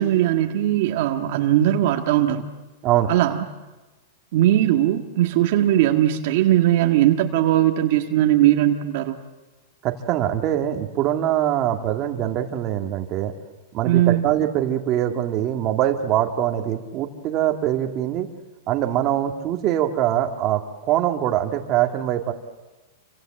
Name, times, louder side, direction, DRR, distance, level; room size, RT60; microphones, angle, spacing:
voice 1, 0.0-2.4 3.1-3.4 4.3-9.2 13.8-14.3, right 13 dB, 50° right, 4 dB, 1.7 m, -19 dB
voice 2, 9.8-13.3 13.7-18.3 18.7-20.6 20.9-22.3, right 12 dB, 30° right, 4 dB, 2.0 m, -23 dB
28.5 x 25.5 x 7.8 m, 1.1 s
supercardioid pair, 165°, 0 cm